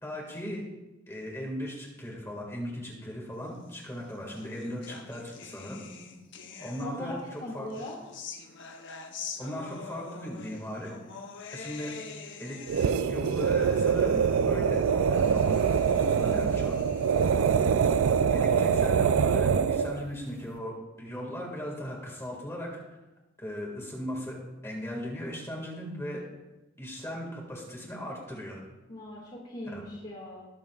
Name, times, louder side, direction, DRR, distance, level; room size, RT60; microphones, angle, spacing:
voice 1, 0.0-0.6 1.1-5.8 6.6-7.7 9.4-10.9 11.5-11.9 12.4-15.6 16.0-16.8 18.3-22.8 23.4-24.4 24.6-26.2 26.8-28.6 29.7-29.8, equal, 15° left, -3 dB, 1.8 m, -38 dB
sound 1, 3.8-7.2 7.7-19.2, left 5 dB, 65° left, 0.9 m, -46 dB
voice 2, 6.8-8.0 28.9-30.4, left 1 dB, 35° left, -5 dB, 2.0 m, -40 dB
sound 2, 12.7-20.0, right 6 dB, 85° right, 0.4 m, -24 dB
20.5 x 6.9 x 2.4 m, 1.0 s
head